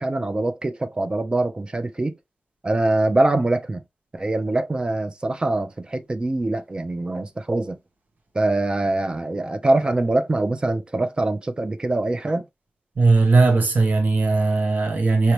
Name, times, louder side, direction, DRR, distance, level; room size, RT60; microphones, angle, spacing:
voice 1, 0.0-2.2 2.6-3.8 4.1-7.8 8.3-12.5, right 2 dB, 30° right, 0.6 m, -23 dB
voice 2, 13.0-15.3, right 3 dB, 70° right, 1.3 m, -18 dB
6.0 x 2.8 x 3.2 m
wide cardioid pair, 115°, 3 cm